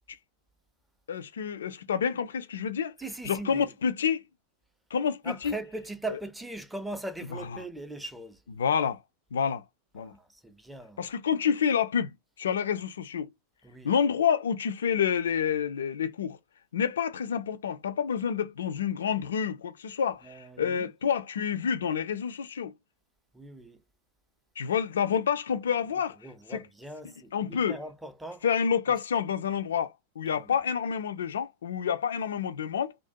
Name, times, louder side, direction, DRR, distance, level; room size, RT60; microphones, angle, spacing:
voice 1, 1.1-2.9 3.2-4.2 4.9-5.5 7.3-7.4 8.6-9.0 9.3-9.6 9.9-10.1 11.0-13.3 13.8-16.4 16.7-22.7 24.6-26.2 26.5-26.6 27.3-27.8 28.4-32.9, left 7 dB, 65° left, 0.3 m, -28 dB
voice 2, 3.0-3.7 5.2-8.4 10.0-11.0 13.6-14.0 20.2-20.9 23.3-23.8 26.2-28.4 30.3-30.5, right 2 dB, 5° right, 0.5 m, -40 dB
2.4 x 2.1 x 2.6 m
figure-of-eight pair, 90°, 0 cm